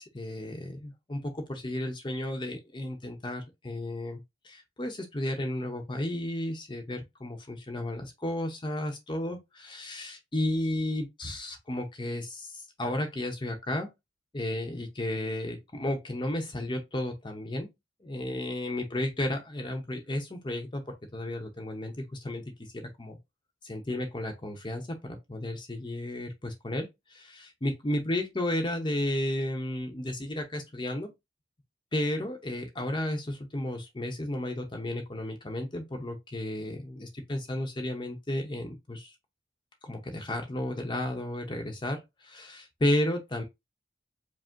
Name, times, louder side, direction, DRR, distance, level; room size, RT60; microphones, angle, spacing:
voice 1, 0.0-13.9 14.3-17.7 18.0-23.2 23.6-31.1 31.9-39.1 39.8-43.4, left 1 dB, 25° left, 0.7 m, -33 dB
5.0 x 2.0 x 3.6 m
head